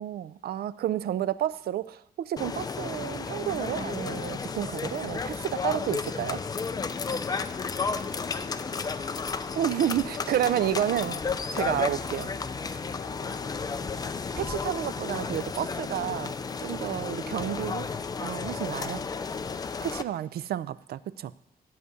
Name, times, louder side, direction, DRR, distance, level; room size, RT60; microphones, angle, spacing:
voice 1, 0.0-6.4 9.6-11.2 11.5-12.3 14.4-16.3 16.6-17.9 18.2-19.0 19.8-21.3, right 11 dB, 70° right, 17 dB, 0.4 m, -30 dB
sound 1, 2.4-20.0, left 5 dB, 25° left, 0.4 m, -33 dB
voice 2, 10.2-11.2 12.9-13.9 17.1-17.9 18.7-19.0, left 7 dB, 60° left, 8 dB, 0.9 m, -49 dB
13.5 x 5.0 x 8.1 m, 0.81 s
wide cardioid pair, 165°, 17 cm